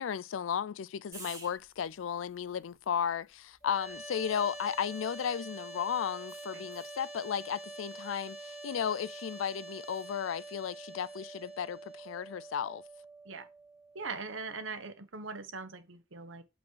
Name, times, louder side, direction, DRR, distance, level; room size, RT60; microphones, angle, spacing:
voice 1, 0.0-12.8, left 8 dB, 85° left, 0.4 m, -34 dB
sound 1, 1.1-5.5 6.3-7.1 9.8-10.1, right 4 dB, 20° right, 2.7 m, -55 dB
sound 2, 3.6-14.7, right 2 dB, 30° left, 2.1 m, -46 dB
voice 2, 13.9-16.4, right 4 dB, 85° right, 1.2 m, -41 dB
8.5 x 4.3 x 4.6 m
head